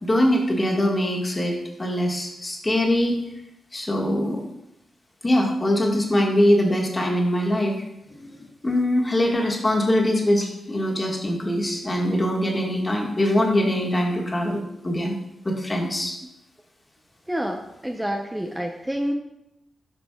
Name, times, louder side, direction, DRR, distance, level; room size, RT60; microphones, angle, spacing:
voice 1, 0.0-3.2 3.7-4.5 5.2-7.8 8.1-15.2 15.4-16.2, left 1 dB, 30° left, 0 dB, 1.6 m, -23 dB
voice 2, 17.3-19.1, equal, 10° right, 2 dB, 0.7 m, -28 dB
9.4 x 5.1 x 2.4 m, 0.85 s
supercardioid pair, 45°, 0 cm